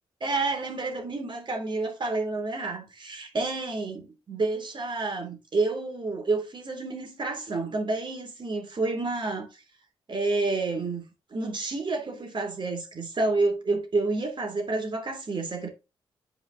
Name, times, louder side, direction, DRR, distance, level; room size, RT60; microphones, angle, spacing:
voice 1, 0.2-9.6 10.1-11.0 11.3-15.7, right 3 dB, 45° right, 3.0 m, -29 dB
8.4 x 5.0 x 3.8 m
hypercardioid pair, 40°, 11 cm